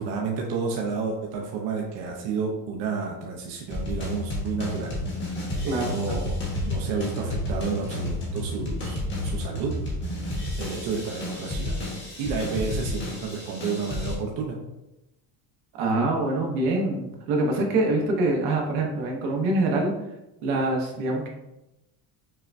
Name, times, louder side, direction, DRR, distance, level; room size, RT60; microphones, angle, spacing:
voice 1, 0.0-4.9 5.4-9.8 10.6-11.8 12.2-14.6, right 5 dB, 55° right, 0 dB, 0.7 m, -31 dB
sound 1, 3.7-14.1, left 1 dB, 25° left, 0.9 m, -31 dB
voice 2, 5.7-6.2 15.8-19.9 20.4-21.3, right 2 dB, 80° right, 1 dB, 1.0 m, -25 dB
5.6 x 2.2 x 2.5 m, 0.94 s
cardioid pair, 160°, 48 cm